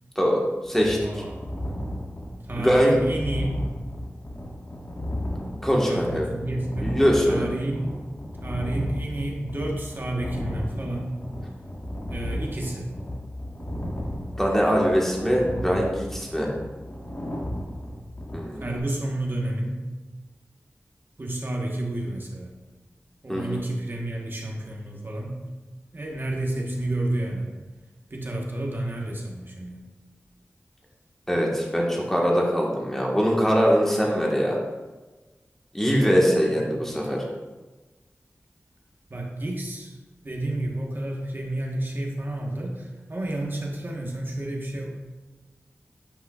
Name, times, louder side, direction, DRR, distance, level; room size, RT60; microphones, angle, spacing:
voice 1, 0.1-1.1 2.5-3.0 5.6-6.3 6.8-7.5 14.4-16.5 18.3-18.6 23.3-23.6 31.3-34.6 35.7-37.2, equal, 10° left, -2 dB, 1.4 m, -22 dB
sound 1, 0.7-18.8, equal, 55° left, 1.4 m, -34 dB
voice 2, 0.9-1.4 2.4-3.5 5.9-7.0 7.3-8.0 8.4-11.1 12.1-12.9 18.6-19.9 21.2-22.5 23.2-25.4 25.9-27.6 28.1-29.9 36.5-37.1 39.1-40.0 40.2-45.0, right 1 dB, 45° right, -1 dB, 1.2 m, -30 dB
8.9 x 5.4 x 2.4 m, 1.2 s
wide cardioid pair, 70°, 5 cm